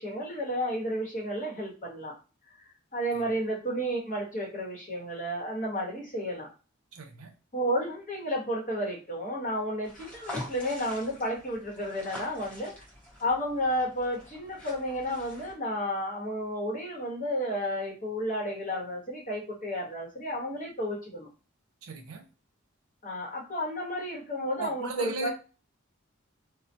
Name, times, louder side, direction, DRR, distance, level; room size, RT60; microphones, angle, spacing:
voice 1, 0.0-2.1 2.9-6.5 7.5-12.7 13.2-21.3 23.0-25.3, equal, 40° left, 1.1 m, -32 dB
voice 2, 6.9-7.3 21.8-22.2 24.6-25.3, right 3 dB, 90° right, 0.6 m, -37 dB
sound 1, 9.8-15.5, left 1 dB, 5° left, 0.8 m, -45 dB
2.2 x 2.2 x 2.6 m
head